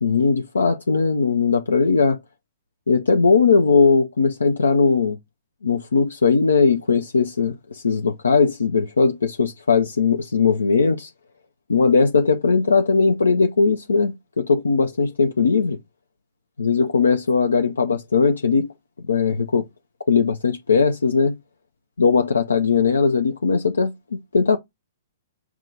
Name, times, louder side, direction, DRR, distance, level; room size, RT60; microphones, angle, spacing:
voice 1, 0.0-2.2 2.9-5.2 5.6-11.1 11.7-15.8 16.6-18.7 19.0-19.7 20.1-21.4 22.0-24.6, left 4 dB, 85° left, 0.5 m, -19 dB
6.0 x 2.3 x 3.8 m
hypercardioid pair, 115°, 0 cm